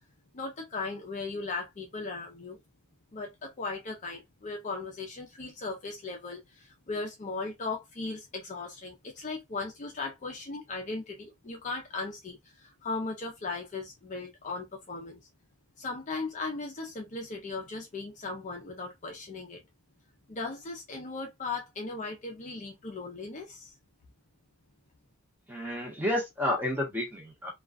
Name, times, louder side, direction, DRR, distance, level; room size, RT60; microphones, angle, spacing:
voice 1, 0.3-2.6 3.1-15.2 15.8-19.6 20.3-23.8, left 3 dB, 35° left, 0.5 m, -37 dB
voice 2, 25.5-27.5, left 1 dB, 10° right, 0.9 m, -30 dB
2.3 x 2.2 x 2.3 m
head